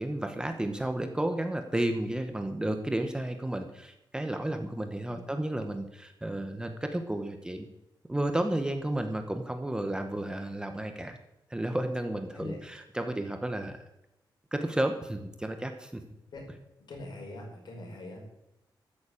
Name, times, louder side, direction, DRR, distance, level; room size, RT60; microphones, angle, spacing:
voice 1, 0.0-7.7 8.1-11.2 11.5-13.8 14.5-16.0, right 1 dB, 10° right, 6 dB, 1.0 m, -32 dB
voice 2, 16.9-18.2, left 2 dB, 60° left, 0 dB, 5.3 m, -42 dB
13.5 x 7.2 x 8.5 m, 0.88 s
wide cardioid pair, 160°, 8 cm